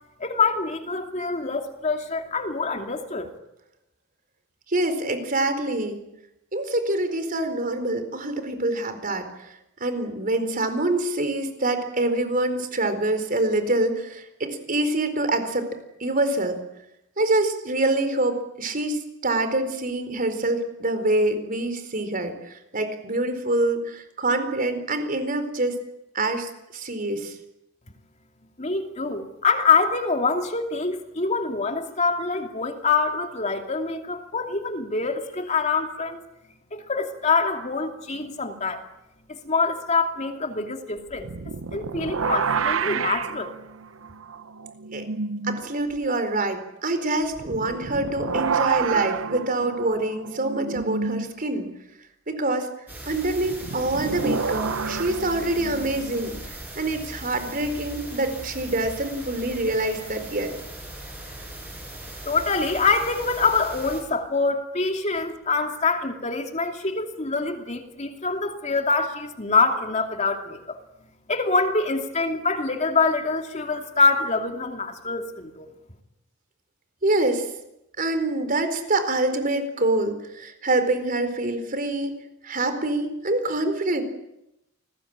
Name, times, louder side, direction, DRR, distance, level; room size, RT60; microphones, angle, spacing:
voice 1, 0.2-3.3 28.6-36.2 36.7-38.8 39.3-41.3 41.7-43.5 62.2-70.8 71.3-75.7, left 4 dB, 35° left, 4 dB, 2.7 m, -25 dB
voice 2, 4.7-6.0 6.5-15.7 16.0-16.6 17.2-25.8 26.1-27.4 44.9-45.1 45.4-51.7 52.3-52.7 53.1-60.5 77.0-77.5 78.0-82.2 82.4-84.0, right 2 dB, 45° right, 8 dB, 4.3 m, -25 dB
sound 1, 41.1-45.6 45.9-46.0 47.3-51.3 53.4-56.3, right 5 dB, 85° right, 0.9 m, -29 dB
sound 2, 52.9-64.0, right 1 dB, 10° right, 7.8 m, -39 dB
28.5 x 20.5 x 8.9 m, 0.86 s
head